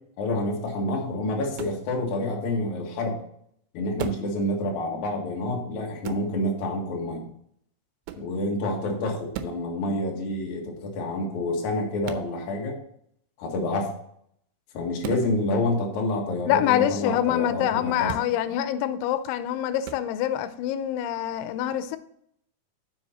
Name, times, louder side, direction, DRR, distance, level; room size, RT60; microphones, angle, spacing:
voice 1, 0.2-3.2 3.7-7.3 8.1-12.8 13.4-13.9 14.7-18.1, left 1 dB, 55° left, 0 dB, 2.4 m, -28 dB
sound 1, 1.5-1.8 4.0-4.3 6.0-6.3 8.0-8.3 9.3-9.6 12.0-12.3 15.0-15.3 18.0-18.3 19.8-20.0, right 9 dB, 85° right, 3.0 m, -36 dB
voice 2, 16.5-22.0, left 11 dB, 90° left, 12 dB, 3.0 m, -25 dB
7.7 x 6.4 x 4.2 m, 0.69 s
omnidirectional pair, 5.3 m